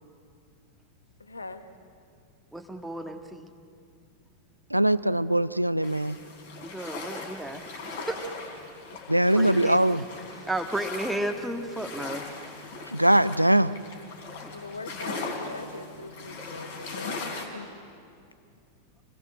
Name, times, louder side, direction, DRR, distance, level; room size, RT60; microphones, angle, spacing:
voice 1, 1.3-1.6 14.5-17.7, left 3 dB, 80° left, 9 dB, 1.2 m, -41 dB
voice 2, 2.5-3.5 6.6-8.3 9.3-9.8 10.5-12.3 14.4-14.5, right 1 dB, 5° right, 3 dB, 1.6 m, -33 dB
voice 3, 4.7-6.2 9.1-10.0 12.9-13.7, right 1 dB, 90° right, 16 dB, 0.5 m, -21 dB
sound 1, 5.8-17.5, left 3 dB, 55° left, 4.5 m, -39 dB
27.5 x 20.5 x 7.7 m, 2.4 s
figure-of-eight pair, 90°, 0 cm